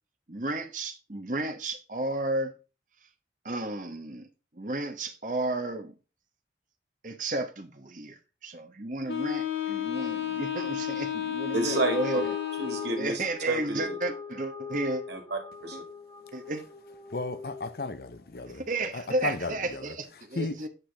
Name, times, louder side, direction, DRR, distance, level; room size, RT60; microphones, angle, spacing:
voice 1, 0.3-2.6 3.4-4.3 4.5-5.9 7.0-12.3 13.0-15.0 15.7-15.8 16.3-16.6 18.5-20.7, right 2 dB, 45° right, 1.0 m, -33 dB
Wind instrument woodwind instrument, 9.1-13.2, left 11 dB, 85° left, 2.0 m, -32 dB
sound 1, 11.5-18.1, left 5 dB, 20° left, 2.1 m, -40 dB
voice 2, 11.5-12.2 12.6-14.0 15.1-15.8, right 2 dB, 75° right, 1.9 m, -31 dB
voice 3, 17.1-18.6 18.9-19.9 20.3-20.6, left 3 dB, 55° left, 0.7 m, -34 dB
8.3 x 5.8 x 3.4 m
head